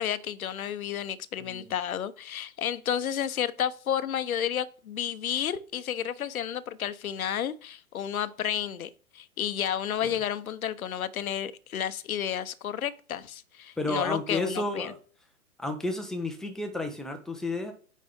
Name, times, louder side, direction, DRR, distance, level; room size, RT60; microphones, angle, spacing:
voice 1, 0.0-14.9, left 9 dB, 70° left, 0.9 m, -31 dB
voice 2, 1.4-1.7 10.0-10.1 13.8-15.0 15.6-17.7, left 2 dB, ahead, 0.6 m, -32 dB
9.2 x 4.2 x 3.7 m
figure-of-eight pair, 120°, 44 cm